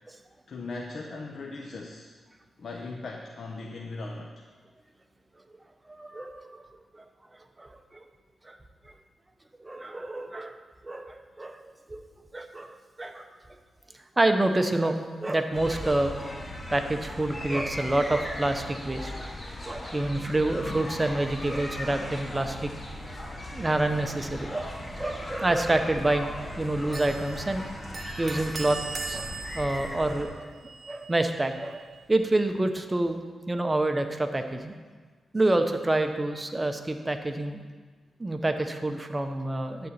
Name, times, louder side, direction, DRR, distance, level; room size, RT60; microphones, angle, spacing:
voice 1, 0.5-2.1 2.6-4.3, left 3 dB, 60° left, 1 dB, 0.8 m, -38 dB
voice 2, 5.9-6.6 7.6-7.7 8.4-8.6 9.6-10.6 10.8-11.6 11.9-12.0 12.3-13.3 14.2-16.1 16.7-19.3 19.6-22.7 23.3-27.6 28.2-28.8 29.1-30.6 30.9-34.8 35.3-37.6 38.2-39.9, right 2 dB, 20° right, 6 dB, 0.9 m, -28 dB
sound 1, 15.5-30.2, left 1 dB, 45° left, 1.9 m, -38 dB
sound 2, 26.9-32.8, right 4 dB, 45° right, 1.2 m, -41 dB
11.0 x 4.0 x 7.3 m, 1.5 s
cardioid pair, 70°, 0 cm